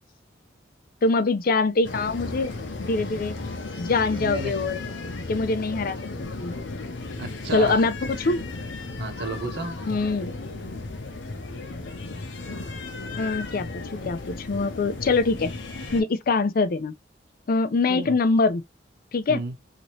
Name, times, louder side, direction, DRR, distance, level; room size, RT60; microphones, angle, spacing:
voice 1, 1.0-2.5 2.8-3.4 3.8-4.8 5.3-6.5 7.5-8.4 9.9-10.3 11.7-11.8 13.2-15.5 15.9-16.9 17.5-18.6 19.1-19.4, left 3 dB, 50° left, 0.4 m, -24 dB
sound 1, 1.8-16.0, left 3 dB, 80° left, 0.7 m, -35 dB
voice 2, 4.2-4.5 7.2-7.8 9.0-9.7 17.9-18.1 19.3-19.5, right 2 dB, 60° right, 0.8 m, -32 dB
2.9 x 2.7 x 3.0 m
head